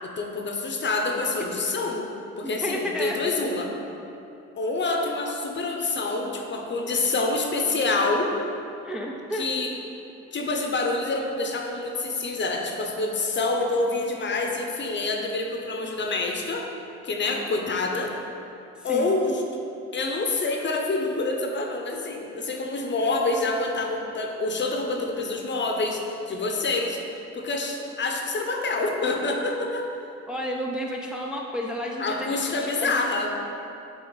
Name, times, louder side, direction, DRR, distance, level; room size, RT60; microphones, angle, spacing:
voice 1, 0.0-2.1 2.4-3.7 4.6-8.3 9.3-9.7 10.3-16.7 17.0-18.2 18.8-19.4 19.9-27.0 27.3-29.9 32.0-33.3, left 3 dB, 40° left, 2 dB, 0.8 m, -27 dB
voice 2, 2.4-3.2 8.8-9.5 18.8-19.1 30.3-32.5 32.8-32.9, equal, 5° right, -1 dB, 0.4 m, -31 dB
7.1 x 3.7 x 3.9 m, 2.8 s
cardioid pair, 90°, 30 cm